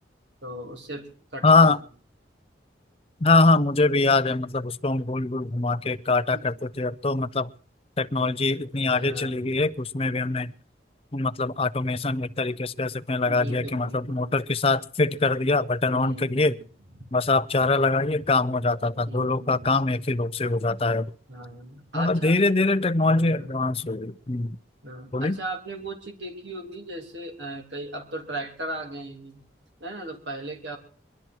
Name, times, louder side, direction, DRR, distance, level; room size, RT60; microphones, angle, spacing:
voice 1, 0.4-1.5 6.3-6.4 8.9-9.7 13.2-14.3 15.9-16.7 19.1-19.8 21.3-22.3 23.0-23.5 24.8-29.4 29.8-30.8, right 1 dB, 80° right, 3 dB, 3.4 m, -37 dB
voice 2, 1.4-1.8 3.2-7.5 8.0-10.5 11.1-16.5 17.1-21.1 21.9-24.6 25.1-25.4, left 3 dB, 30° left, 12 dB, 0.6 m, -23 dB
22.5 x 12.0 x 4.6 m, 0.43 s
head